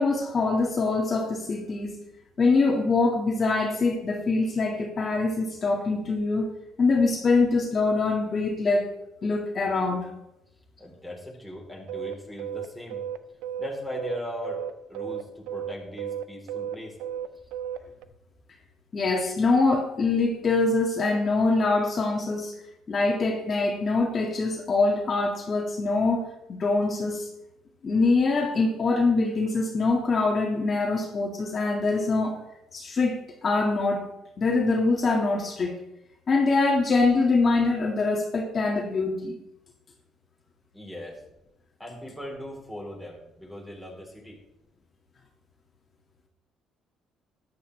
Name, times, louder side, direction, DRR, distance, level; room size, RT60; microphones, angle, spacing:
voice 1, 0.0-2.0 2.4-6.5 6.8-8.9 9.2-10.1 18.9-22.5 22.9-27.3 27.8-32.4 32.7-35.7 36.3-39.4, left 3 dB, 40° left, 0 dB, 1.9 m, -24 dB
voice 2, 10.8-13.0 13.6-17.0 40.7-41.2 41.8-44.4, left 1 dB, ahead, -1 dB, 3.7 m, -39 dB
sound 1, 11.9-18.1, right 9 dB, 90° right, 0.6 m, -33 dB
13.0 x 10.5 x 3.3 m, 0.88 s
cardioid pair, 100°, 0 cm